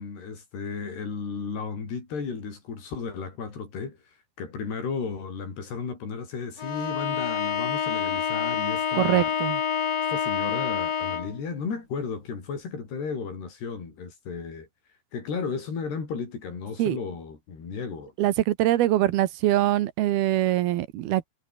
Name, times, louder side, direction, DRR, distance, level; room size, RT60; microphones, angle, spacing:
voice 1, 0.0-4.0 4.4-9.3 10.1-14.7 15.1-18.1, left 5 dB, 90° left, 8.1 m, -34 dB
Bowed string instrument, 6.6-11.4, left 7 dB, 45° left, 2.8 m, -27 dB
voice 2, 8.9-9.6 16.8-17.0 18.2-21.3, right 14 dB, 80° right, 2.9 m, -23 dB
omnidirectional pair, 4.6 m